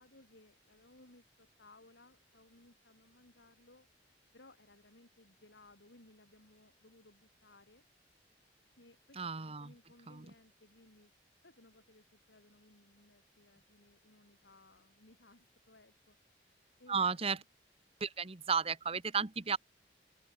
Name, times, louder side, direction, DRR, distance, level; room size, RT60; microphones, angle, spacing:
voice 1, 0.0-3.9 4.3-7.8 8.8-11.1 11.4-16.2 16.8-17.4, left 2 dB, 80° left, 3.6 m, -62 dB
voice 2, 9.2-9.7 10.1-10.3 16.9-17.4 18.0-19.6, right 5 dB, 35° right, 1.1 m, -34 dB
open air
head